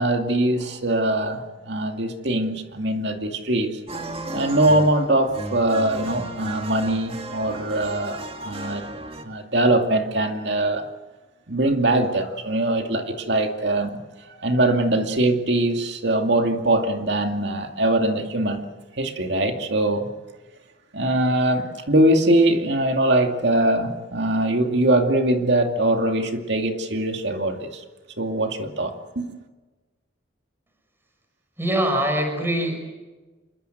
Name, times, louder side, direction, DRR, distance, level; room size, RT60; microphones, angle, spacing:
voice 1, 0.0-3.8 4.3-8.8 9.1-10.8 11.5-14.0 14.3-18.6 19.0-20.1 20.9-27.8 28.2-29.4, right 1 dB, 60° right, 4 dB, 2.4 m, -22 dB
sound 1, 3.9-9.2, right 1 dB, 30° right, 2.3 m, -35 dB
voice 2, 31.6-32.8, right 1 dB, 10° right, 4 dB, 5.7 m, -23 dB
27.5 x 23.0 x 8.0 m, 1.2 s
head